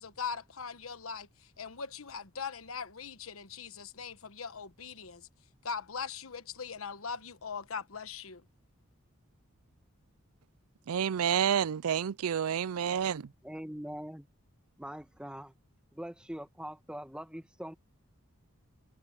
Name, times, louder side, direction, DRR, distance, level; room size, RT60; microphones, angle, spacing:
voice 1, 0.0-5.3 5.6-8.4, left 6 dB, 75° left, 1.2 m, -40 dB
voice 2, 10.9-13.3, right 8 dB, 90° right, 0.4 m, -29 dB
voice 3, 13.4-14.3 14.8-15.5 15.9-17.7, equal, 5° right, 1.3 m, -42 dB
head